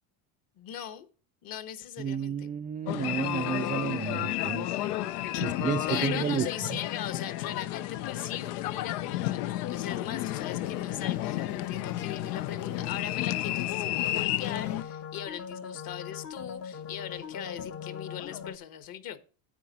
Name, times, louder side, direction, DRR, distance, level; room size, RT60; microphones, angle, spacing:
voice 1, 0.6-1.1 1.4-2.5 5.3-19.2, left 10 dB, 50° left, 1.3 m, -39 dB
voice 2, 2.0-4.7 5.4-6.5, right 8 dB, 20° right, 0.4 m, -31 dB
sound 1, 2.9-14.8, left 14 dB, 80° left, 0.7 m, -32 dB
sound 2, 10.3-18.6, left 7 dB, 30° left, 0.7 m, -42 dB
10.0 x 7.7 x 4.0 m
supercardioid pair, 110°, 45 cm